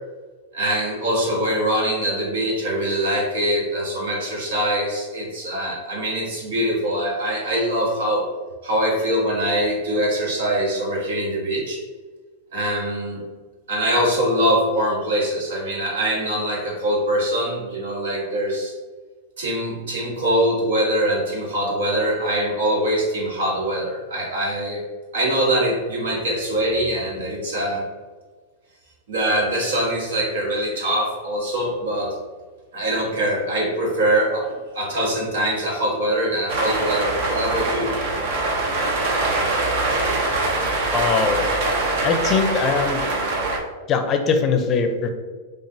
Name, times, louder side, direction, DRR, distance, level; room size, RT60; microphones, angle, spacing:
voice 1, 0.5-8.3 8.6-11.8 12.5-13.2 13.7-18.7 19.4-24.8 25.1-27.8 29.1-32.1 32.7-37.9, right 1 dB, 80° right, -2 dB, 1.4 m, -23 dB
sound 1, 36.5-43.6, right 2 dB, 65° right, 0.9 m, -23 dB
voice 2, 40.9-41.5 42.0-43.0 43.9-45.1, left 5 dB, 35° left, 7 dB, 0.5 m, -21 dB
5.8 x 2.4 x 2.7 m, 1.4 s
hypercardioid pair, 115°, 0 cm